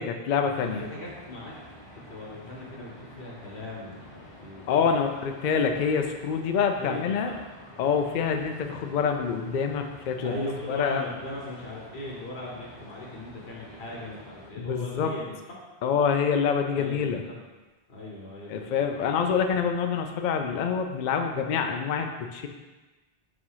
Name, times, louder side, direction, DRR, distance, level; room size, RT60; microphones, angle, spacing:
voice 1, 0.0-0.8 4.7-7.3 7.8-10.3 10.7-11.1 14.6-15.1 15.8-17.2 18.5-22.5, left 6 dB, 55° left, 5 dB, 0.6 m, -26 dB
sound 1, 0.5-14.5, equal, 30° left, 0.9 m, -49 dB
voice 2, 0.6-1.5 2.1-5.0 6.8-7.4 10.2-15.6 16.7-17.4 17.9-18.7 19.0-19.1, left 1 dB, 80° left, -4 dB, 1.4 m, -39 dB
4.9 x 3.6 x 5.5 m, 1.2 s
omnidirectional pair, 1.0 m